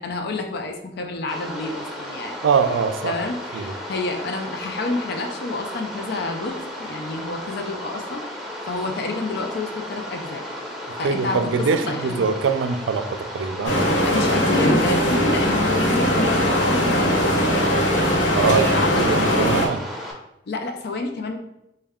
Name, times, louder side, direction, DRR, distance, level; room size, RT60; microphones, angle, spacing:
voice 1, 0.0-2.4 3.0-8.3 8.7-10.4 11.0-12.3 14.0-17.4 18.4-19.7 20.5-21.4, left 3 dB, 60° left, 4 dB, 0.4 m, -29 dB
sound 1, 1.3-20.1, equal, ahead, 0.7 m, -34 dB
voice 2, 2.4-3.2 3.5-3.7 10.9-13.8 18.3-19.8, right 5 dB, 85° right, 8 dB, 0.4 m, -23 dB
quarry close up, 13.6-19.7, equal, 80° left, 0.8 m, -20 dB
4.2 x 2.2 x 3.5 m, 0.85 s
head